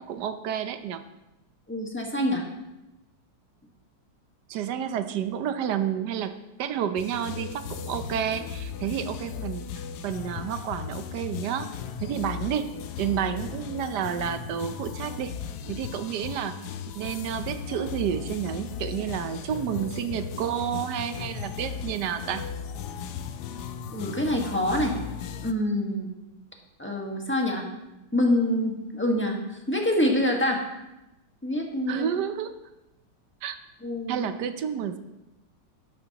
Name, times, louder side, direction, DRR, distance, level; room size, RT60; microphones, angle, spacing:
voice 1, 0.1-1.0 4.5-6.3 6.6-9.7 10.0-11.7 12.0-12.7 13.0-15.3 15.7-16.5 17.0-22.5 31.9-32.5 33.4-33.6 34.1-35.0, right 9 dB, 70° right, 10 dB, 1.3 m, -30 dB
voice 2, 1.7-2.5 23.9-24.9 25.4-26.1 26.8-27.7 28.1-29.4 29.7-30.6 31.4-32.1 33.8-34.2, left 1 dB, 5° left, 0 dB, 1.3 m, -26 dB
sound 1, 7.0-25.5, left 7 dB, 70° left, 1.2 m, -37 dB
12.0 x 11.5 x 2.9 m, 0.98 s
omnidirectional pair, 1.9 m